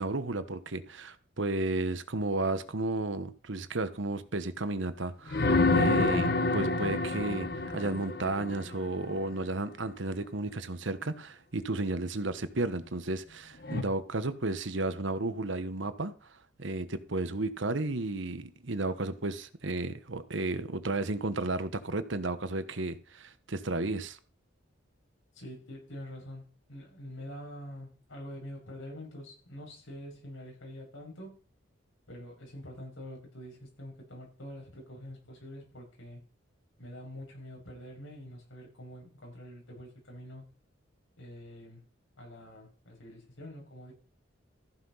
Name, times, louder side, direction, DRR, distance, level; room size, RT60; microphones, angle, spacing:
voice 1, 0.0-16.1 16.6-24.2, right 2 dB, 70° right, 1.1 m, -33 dB
sound 1, 5.3-9.1 13.6-13.8, left 2 dB, 50° left, 1.0 m, -28 dB
voice 2, 25.3-31.3 32.1-36.2 36.8-40.4 41.2-41.9 42.2-43.9, equal, 80° left, 6.4 m, -46 dB
14.5 x 5.8 x 5.7 m
head